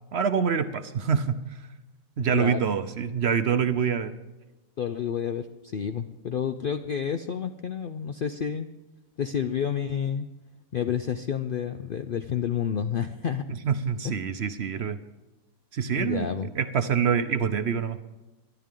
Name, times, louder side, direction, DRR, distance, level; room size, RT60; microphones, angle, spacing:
voice 1, 0.1-1.7 2.2-4.1 13.5-15.0 15.7-16.3 16.5-18.1, right 7 dB, 60° right, 10 dB, 0.8 m, -26 dB
voice 2, 2.3-2.7 4.8-8.7 9.2-10.3 10.7-13.4 14.0-14.1 16.0-16.5, left 8 dB, 65° left, 9 dB, 0.5 m, -29 dB
24.5 x 11.0 x 3.7 m, 1.1 s
omnidirectional pair, 1.5 m